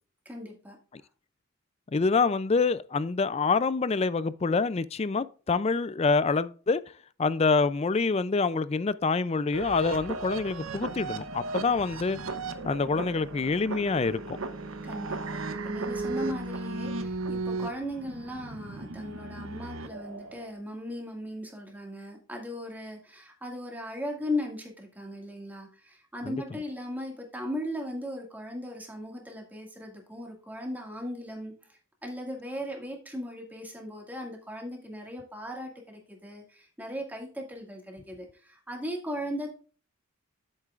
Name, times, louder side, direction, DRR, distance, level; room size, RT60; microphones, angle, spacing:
voice 1, 0.3-0.8 14.8-39.5, left 1 dB, 10° right, 1.9 m, -38 dB
voice 2, 1.9-6.8 7.2-12.2 12.6-14.4 26.2-26.3, left 4 dB, 30° left, 0.4 m, -26 dB
sound 1, 9.5-20.5, right 3 dB, 70° right, 0.9 m, -36 dB
9.8 x 8.5 x 2.5 m
head